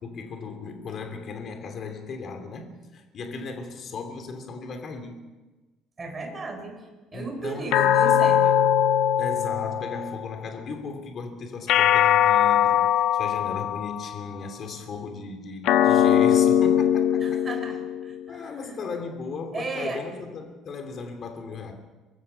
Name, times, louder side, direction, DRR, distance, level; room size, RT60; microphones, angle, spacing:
voice 1, 0.0-5.2 7.1-7.8 8.0-8.2 9.2-17.6 18.3-21.7, left 4 dB, 35° left, 5 dB, 2.9 m, -36 dB
voice 2, 6.0-8.6 17.2-18.7 19.5-20.0, right 3 dB, 15° right, 4 dB, 4.3 m, -35 dB
sound 1, 7.7-10.3 11.7-14.2 15.7-18.3, left 10 dB, 55° left, 1.0 m, -21 dB
24.5 x 21.5 x 5.7 m, 1.2 s
cardioid pair, 180°, 0 cm